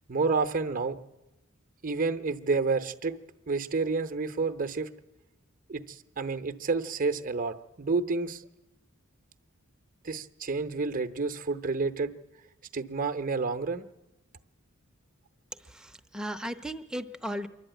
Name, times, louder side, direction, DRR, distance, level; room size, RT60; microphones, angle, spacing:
voice 1, 0.1-1.0 1.8-3.2 3.5-4.9 5.7-8.5 10.0-12.1 12.7-13.9, right 4 dB, 40° right, 9 dB, 0.8 m, -29 dB
voice 2, 15.6-17.5, equal, 5° right, 7 dB, 0.7 m, -36 dB
26.5 x 11.5 x 9.1 m, 1.1 s
head